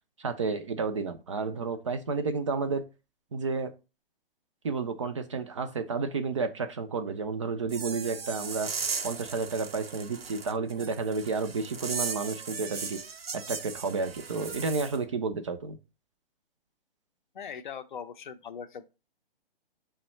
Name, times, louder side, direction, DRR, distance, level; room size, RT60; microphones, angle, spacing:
voice 1, 0.2-2.8 3.3-3.7 4.6-8.7 9.0-13.0 13.3-15.8, right 4 dB, 35° right, 0.4 m, -31 dB
sound 1, 7.7-15.0, right 5 dB, 80° right, 0.7 m, -37 dB
voice 2, 17.3-18.8, left 7 dB, 55° left, 0.5 m, -40 dB
5.3 x 2.1 x 4.2 m
figure-of-eight pair, 130°, 29 cm